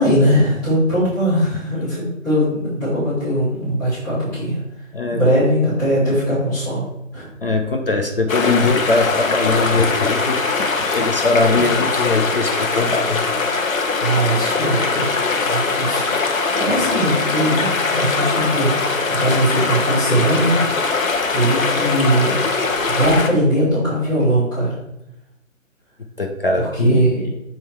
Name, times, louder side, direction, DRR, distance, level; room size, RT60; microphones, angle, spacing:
voice 1, 0.0-4.6 5.1-6.9 7.1-7.3 11.5-11.8 14.0-15.1 15.4-18.8 19.1-22.4 22.9-24.8 26.6-27.3, equal, 15° left, -14 dB, 2.7 m, -20 dB
voice 2, 7.4-13.2 15.4-15.6 26.2-27.0, left 3 dB, 45° left, 4 dB, 0.7 m, -20 dB
sound 1, 8.3-23.3, left 4 dB, 85° left, 1.2 m, -21 dB
7.7 x 3.7 x 4.5 m, 0.86 s
hypercardioid pair, 175°, 39 cm